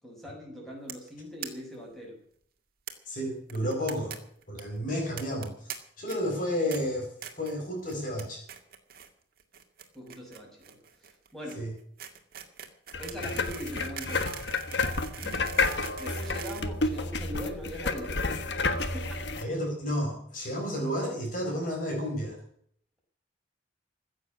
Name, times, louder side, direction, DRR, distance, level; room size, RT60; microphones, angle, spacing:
voice 1, 0.0-2.2 9.9-11.7 13.0-14.3 15.2-15.5 16.0-18.4 18.8-19.2, equal, ahead, -2 dB, 6.3 m, -41 dB
sound 1, 0.9-1.1 1.4-1.5 1.8-1.9 2.1-2.2 2.9-3.0 3.5-4.2 4.4-4.6 5.2-5.8 6.1-6.4 6.7-6.8 7.2-7.5 7.9-8.2 8.5-9.1 9.4-17.4, right 9 dB, 50° right, 2.1 m, -42 dB
voice 2, 3.1-4.2 4.5-8.4 11.6-11.7 19.4-22.4, equal, 45° left, 1 dB, 4.3 m, -32 dB
sound 2, 12.9-19.4, left 3 dB, 65° left, 1.4 m, -30 dB
15.5 x 8.0 x 9.8 m, 0.62 s
head